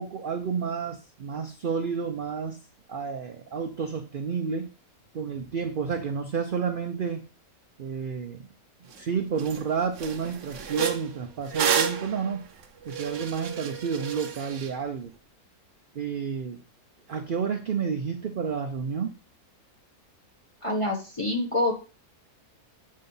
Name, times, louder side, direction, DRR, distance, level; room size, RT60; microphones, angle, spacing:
voice 1, 0.0-2.6 2.9-4.7 5.1-7.2 7.8-8.4 9.0-12.5 12.9-15.1 15.9-16.6 17.1-19.1, right 6 dB, 75° right, 4 dB, 0.4 m, -30 dB
sound 1, 8.9-9.0 9.4-9.6 9.9-14.7, right 8 dB, 60° right, 1.0 m, -30 dB
voice 2, 20.6-21.7, left 1 dB, 25° left, 1 dB, 0.7 m, -26 dB
7.6 x 2.6 x 5.3 m, 0.35 s
omnidirectional pair, 1.6 m